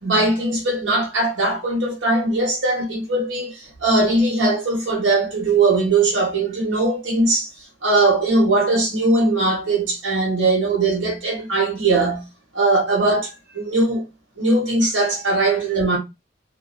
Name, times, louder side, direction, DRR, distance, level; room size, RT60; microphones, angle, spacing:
voice 1, 0.0-7.5 7.8-12.2 12.5-14.0 14.4-16.0, right 2 dB, 75° right, 1.0 m, -20 dB
2.5 x 2.3 x 2.4 m
head